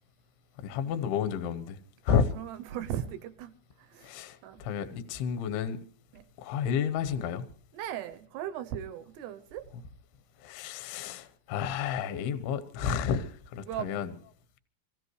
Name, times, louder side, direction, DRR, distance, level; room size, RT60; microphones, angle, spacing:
voice 1, 0.6-1.8 2.0-2.3 4.0-5.8 6.4-7.5 10.4-14.1, left 7 dB, 70° left, 2.9 m, -31 dB
voice 2, 2.1-3.5 3.8-4.1 4.4-4.6 6.1-6.2 7.7-9.7 13.6-13.9, right 11 dB, 75° right, 2.7 m, -38 dB
25.0 x 16.0 x 3.2 m
omnidirectional pair, 5.2 m